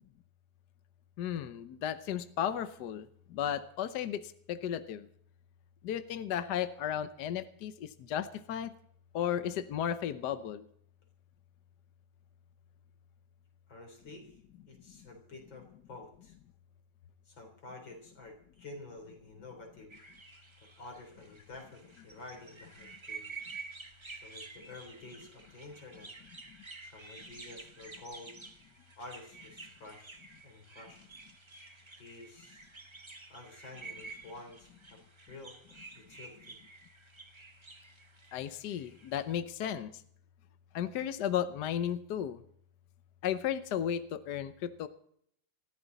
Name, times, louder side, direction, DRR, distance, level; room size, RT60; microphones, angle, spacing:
voice 1, 1.2-5.1 5.8-8.7 9.1-10.7 38.3-39.9 40.7-42.4 43.2-44.9, left 9 dB, 65° left, 11 dB, 1.3 m, -34 dB
voice 2, 13.7-14.4 14.7-16.4 17.3-19.9 20.8-23.3 24.1-26.1 26.8-28.4 29.0-31.0 32.0-32.7 33.3-35.0 35.3-35.6 36.0-36.6, left 2 dB, 90° left, 3 dB, 4.6 m, -50 dB
sound 1, 19.9-39.4, right 4 dB, 20° right, 1.0 m, -50 dB
20.5 x 15.0 x 4.1 m, 0.67 s
omnidirectional pair, 2.0 m